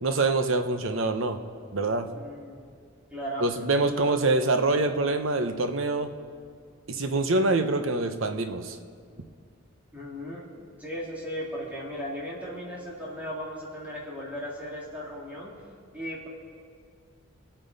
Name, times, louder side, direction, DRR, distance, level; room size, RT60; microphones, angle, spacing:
voice 1, 0.0-1.4 1.7-2.1 3.4-6.1 6.9-8.8, right 2 dB, 65° right, 7 dB, 0.9 m, -25 dB
voice 2, 2.1-2.6 3.1-3.4 3.9-4.2 9.9-15.5 15.9-16.3, equal, 5° right, -6 dB, 2.9 m, -37 dB
26.5 x 8.9 x 4.1 m, 2.2 s
head